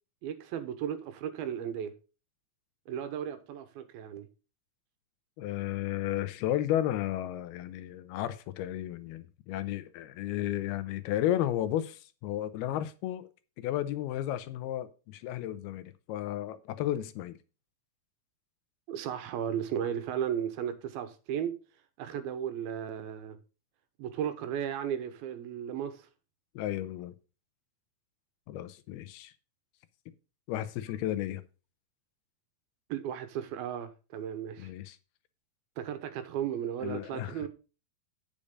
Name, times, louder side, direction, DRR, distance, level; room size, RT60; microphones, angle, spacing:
voice 1, 0.2-1.9 2.9-4.3 18.9-21.5 22.0-23.4 24.0-26.1 32.9-34.7 35.8-37.5, right 9 dB, 80° right, 2.8 m, -35 dB
voice 2, 5.4-13.3 13.6-17.4 26.6-27.1 28.5-29.3 30.5-31.4 34.6-35.0 36.8-37.5, left 12 dB, 90° left, 2.8 m, -33 dB
8.7 x 6.7 x 5.2 m
omnidirectional pair, 4.4 m